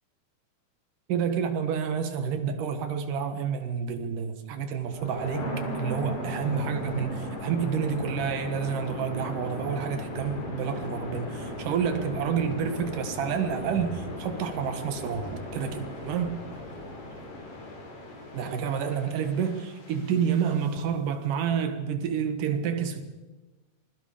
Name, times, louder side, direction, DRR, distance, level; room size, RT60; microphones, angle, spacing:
voice 1, 1.1-16.4 18.3-23.0, right 7 dB, 80° right, 3.2 m, -29 dB
sound 1, 4.8-20.8, left 1 dB, 75° left, 5.6 m, -37 dB
sound 2, 4.8-17.3, right 2 dB, 40° right, 3.2 m, -47 dB
26.0 x 21.5 x 5.1 m
omnidirectional pair, 3.7 m